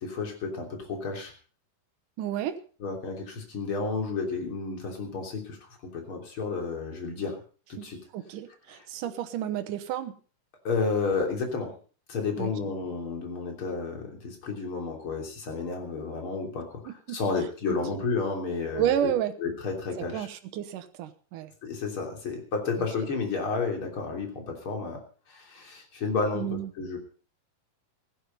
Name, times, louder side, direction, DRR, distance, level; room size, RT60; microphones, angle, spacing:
voice 1, 0.0-1.3 2.8-5.6 5.8-7.4 7.7-8.0 8.7-8.9 10.6-11.7 12.1-19.1 19.4-20.3 21.6-25.0 25.3-27.0, left 4 dB, 35° left, 3 dB, 3.8 m, -31 dB
voice 2, 2.2-2.6 7.8-7.9 8.1-10.1 12.4-12.5 16.9-17.2 18.7-19.3 20.1-21.5 26.3-26.7, right 11 dB, 65° right, 10 dB, 2.4 m, -31 dB
15.5 x 12.0 x 5.4 m, 0.39 s
omnidirectional pair, 4.3 m